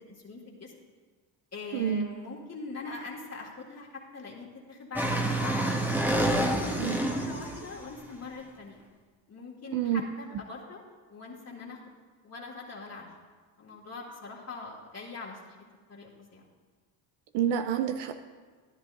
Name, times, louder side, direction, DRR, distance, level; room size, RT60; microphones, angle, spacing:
voice 1, 0.1-0.7 1.5-5.8 6.4-8.8 9.3-10.8 11.1-11.8 12.2-13.1 13.6-15.6 15.9-16.4, left 3 dB, 40° left, -3 dB, 2.0 m, -42 dB
voice 2, 1.7-2.1 6.8-7.0 9.7-10.0 17.3-18.1, right 9 dB, 75° right, 8 dB, 0.7 m, -28 dB
sound 1, 5.0-7.8, right 1 dB, 5° right, 1.3 m, -28 dB
13.5 x 10.5 x 2.6 m, 1.5 s
supercardioid pair, 65°, 41 cm